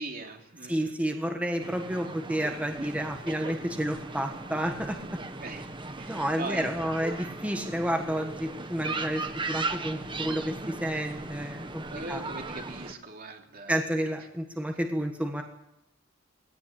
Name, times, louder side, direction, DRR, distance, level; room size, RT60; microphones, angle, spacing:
voice 1, 0.0-0.9 5.4-5.7 6.0-7.3 11.9-13.8, right 2 dB, 50° right, 3 dB, 3.0 m, -40 dB
voice 2, 0.7-5.0 6.1-11.8 12.1-12.2 13.7-15.4, right 1 dB, 5° right, 3 dB, 1.5 m, -30 dB
sound 1, 1.6-12.9, right 3 dB, 25° right, 1.4 m, -37 dB
19.0 x 18.0 x 8.8 m, 0.84 s
head